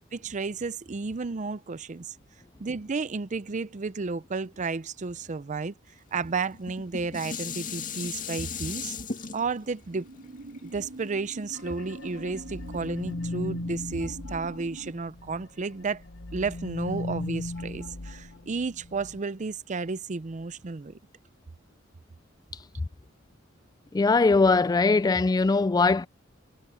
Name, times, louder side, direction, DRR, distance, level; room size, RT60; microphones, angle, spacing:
voice 1, 0.0-2.2 2.6-5.7 6.1-9.0 9.3-10.1 10.7-16.0 16.3-21.0, right 4 dB, 40° right, 0.5 m, -32 dB
Dishes pots and pans, 6.5-11.8 12.4-12.5, left 6 dB, 45° left, 2.0 m, -37 dB
sound 1, 9.9-14.9, right 2 dB, 80° right, 2.0 m, -44 dB
sound 2, 11.5-15.4 15.8-19.2, left 2 dB, 75° left, 1.2 m, -37 dB
voice 2, 23.9-26.1, left 3 dB, 20° left, 0.3 m, -21 dB
head